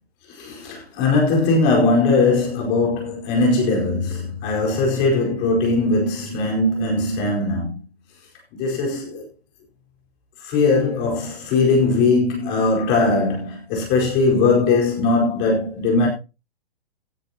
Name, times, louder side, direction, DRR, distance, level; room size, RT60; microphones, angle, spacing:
voice 1, 0.3-7.8 8.5-9.3 10.4-16.1, left 3 dB, 30° left, 4.7 m, -20 dB
16.0 x 10.5 x 2.9 m
hypercardioid pair, 135°, 32 cm